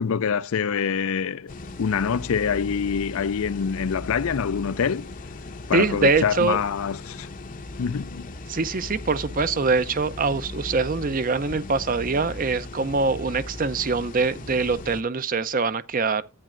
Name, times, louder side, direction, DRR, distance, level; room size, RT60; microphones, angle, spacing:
voice 1, 0.0-1.5 1.8-5.1 5.7-7.3 7.8-8.3, left 6 dB, 70° left, 0.4 m, -25 dB
sound 1, 1.5-15.0, left 2 dB, 35° left, 0.7 m, -38 dB
voice 2, 5.7-6.6 8.5-16.2, right 4 dB, 40° right, 0.6 m, -23 dB
12.0 x 8.8 x 2.5 m
head